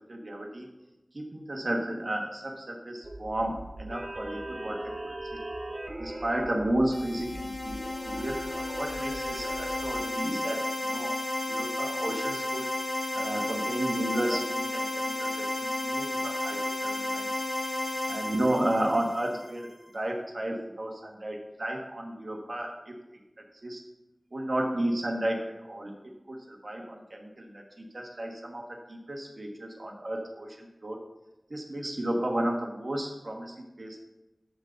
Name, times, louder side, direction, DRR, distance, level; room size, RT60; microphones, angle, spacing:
voice 1, 0.1-0.7 1.1-5.4 6.0-8.4 8.8-11.1 11.5-12.7 13.1-17.3 18.1-22.9 23.6-23.8 24.3-25.9 26.3-31.0 31.5-34.0, right 1 dB, 60° right, 0 dB, 1.5 m, -33 dB
sound 1, 3.0-10.0, right 1 dB, 40° right, 0.7 m, -40 dB
sound 2, 6.9-19.6, left 1 dB, 70° left, 2.6 m, -32 dB
11.0 x 3.9 x 7.0 m, 0.99 s
wide cardioid pair, 55°, 0 cm